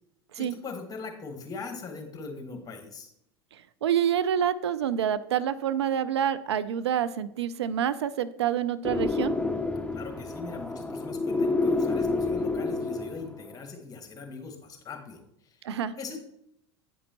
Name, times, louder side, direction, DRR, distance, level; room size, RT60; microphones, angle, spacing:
voice 1, 0.4-3.1 9.9-15.2 16.0-16.2, left 4 dB, 25° left, 5 dB, 1.5 m, -40 dB
voice 2, 3.8-9.4 15.6-15.9, right 9 dB, 85° right, 15 dB, 0.4 m, -27 dB
sound 1, 8.8-13.5, left 3 dB, 10° left, 0.6 m, -29 dB
9.3 x 5.3 x 2.9 m, 0.76 s
hypercardioid pair, 80°, 14 cm